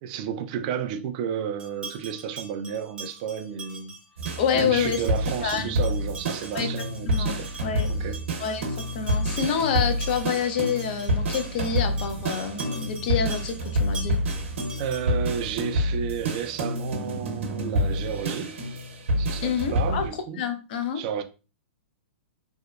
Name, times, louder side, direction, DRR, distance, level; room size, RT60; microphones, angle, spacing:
voice 1, 0.0-4.0 4.5-7.5 7.9-8.3 14.8-18.6 19.2-20.4 20.9-21.2, right 8 dB, 40° right, 0.3 m, -32 dB
sound 1, 1.6-15.3, right 3 dB, 15° right, 0.7 m, -43 dB
sound 2, 4.2-20.1, equal, 75° right, 0.8 m, -28 dB
voice 2, 4.4-5.0 5.4-5.8 6.5-6.7 7.1-7.9 8.4-14.2 19.4-21.0, left 7 dB, 50° left, 0.5 m, -27 dB
2.8 x 2.1 x 2.3 m
hypercardioid pair, 150°, 7 cm